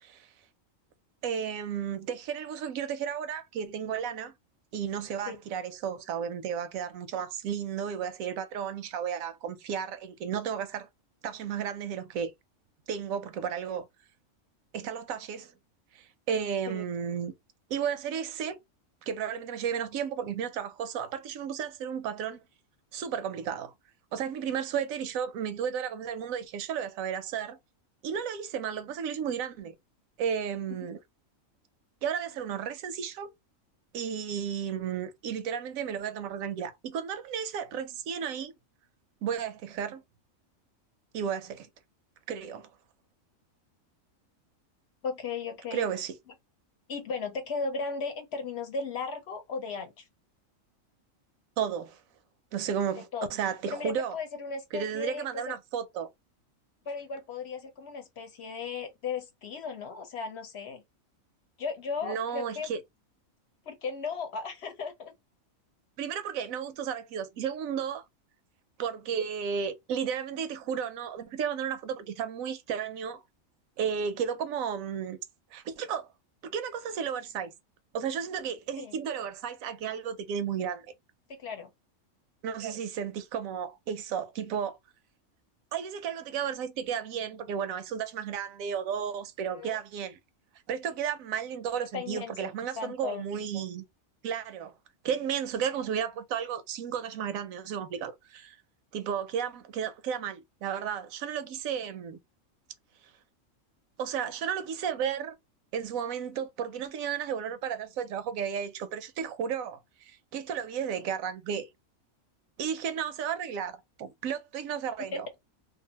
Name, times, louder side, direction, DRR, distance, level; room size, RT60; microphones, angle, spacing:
voice 1, 1.2-4.3 4.7-10.9 11.2-12.3 12.9-13.9 14.7-15.5 15.9-17.3 17.7-18.6 19.0-22.4 22.9-23.7 24.1-27.6 28.0-29.7 30.2-31.0 32.0-33.3 33.9-38.5 39.2-40.0 41.1-41.7 42.3-42.7 45.7-46.2 51.6-52.0 52.5-54.1 54.7-56.1 62.0-62.8 66.0-68.0 68.8-73.2 73.8-75.2 75.5-76.1 76.4-77.5 77.9-80.8 82.4-84.8 85.7-90.2 90.7-93.8 94.2-94.7 95.0-98.6 98.9-102.2 104.0-105.4 105.7-111.7 112.6-115.3, right 8 dB, 80° right, 1.0 m, -33 dB
voice 2, 45.0-45.9 46.9-50.1 53.0-53.3 53.7-55.6 56.9-60.8 61.6-62.7 63.7-65.1 78.8-79.0 81.3-81.7 89.5-89.8 91.9-93.3 115.1-115.2, left 5 dB, 60° left, 0.8 m, -36 dB
2.7 x 2.5 x 2.8 m
omnidirectional pair, 1.4 m